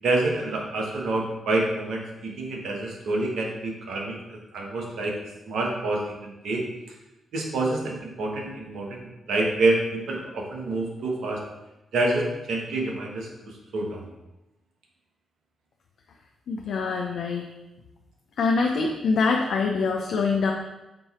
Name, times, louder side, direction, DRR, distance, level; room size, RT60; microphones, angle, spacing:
voice 1, 0.0-5.1 5.5-6.6 7.3-11.4 11.9-13.3 13.7-14.1, right 2 dB, 70° right, 0 dB, 1.2 m, -27 dB
voice 2, 16.5-17.5 18.4-20.5, left 4 dB, 70° left, 1 dB, 0.6 m, -24 dB
7.6 x 3.1 x 4.2 m, 0.97 s
hypercardioid pair, 40°, 0 cm